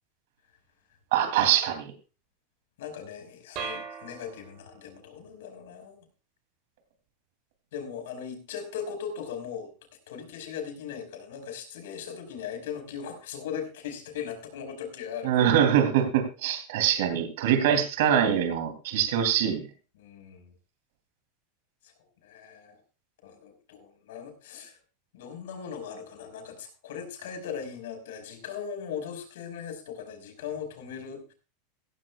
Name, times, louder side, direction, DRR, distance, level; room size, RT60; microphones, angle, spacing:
voice 1, 1.1-1.9 15.2-19.6, right 9 dB, 70° right, 7 dB, 2.9 m, -24 dB
voice 2, 2.8-6.1 7.7-9.7 10.1-15.5 20.0-20.5 21.8-21.9 22.2-22.8 23.2-24.8 25.1-31.3, left 7 dB, 85° left, 6 dB, 5.1 m, -39 dB
sound 1, 3.6-4.9, right 5 dB, 45° right, 6.1 m, -39 dB
16.0 x 15.0 x 2.4 m, 0.33 s
supercardioid pair, 150°, 0 cm